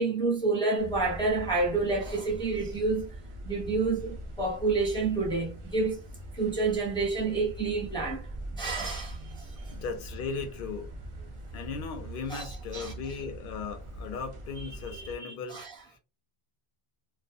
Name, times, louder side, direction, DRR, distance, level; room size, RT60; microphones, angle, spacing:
voice 1, 0.0-3.1 3.4-6.0 6.3-8.3 8.5-9.5 12.3-12.9 14.9-15.7, right 3 dB, 5° left, 0.6 m, -29 dB
sound 1, 0.8-15.1, right 1 dB, 50° right, 0.4 m, -42 dB
voice 2, 9.7-10.9 11.5-15.6 15.9-16.0, left 5 dB, 60° left, 0.8 m, -37 dB
2.4 x 2.2 x 2.5 m
omnidirectional pair, 1.1 m